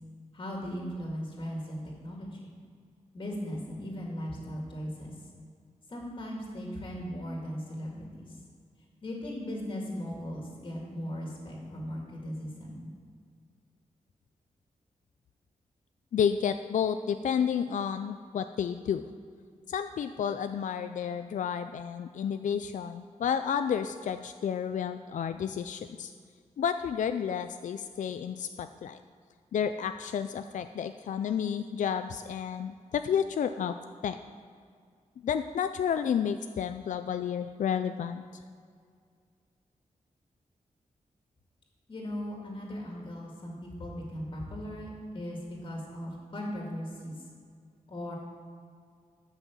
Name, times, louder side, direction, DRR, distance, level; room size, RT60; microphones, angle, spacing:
voice 1, 0.3-2.5 3.1-5.1 5.9-8.3 9.0-12.9 41.9-44.9 45.1-47.2 47.9-48.1, equal, 40° left, -2 dB, 2.2 m, -38 dB
voice 2, 16.1-19.1 19.7-26.1 26.6-29.0 29.5-33.8 34.0-34.2 35.2-38.2, left 8 dB, 70° left, 9 dB, 0.4 m, -31 dB
13.0 x 6.0 x 7.2 m, 2.1 s
wide cardioid pair, 180°, 13 cm